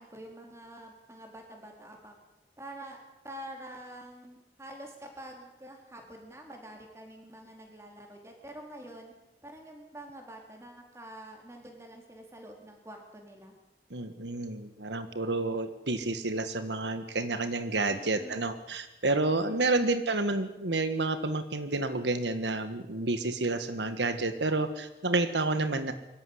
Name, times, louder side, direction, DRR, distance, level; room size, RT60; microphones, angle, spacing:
voice 1, 0.0-2.1 2.6-3.0 3.2-9.1 9.4-13.5 17.9-18.4 19.4-20.0, right 1 dB, 15° right, 2 dB, 4.2 m, -47 dB
voice 2, 13.9-25.9, right 2 dB, 90° right, 10 dB, 1.6 m, -30 dB
24.0 x 14.0 x 9.9 m, 0.99 s
head